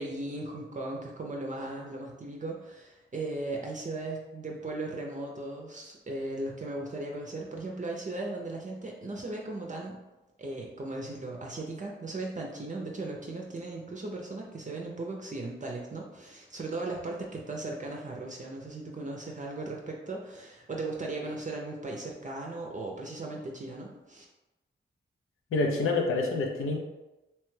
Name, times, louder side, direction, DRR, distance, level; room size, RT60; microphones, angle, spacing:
voice 1, 0.0-10.0 10.4-24.3, right 2 dB, 35° right, -1 dB, 0.5 m, -37 dB
voice 2, 25.5-26.8, left 3 dB, 90° left, 2 dB, 0.5 m, -27 dB
2.8 x 2.2 x 3.2 m, 1.0 s
cardioid pair, 60°, 21 cm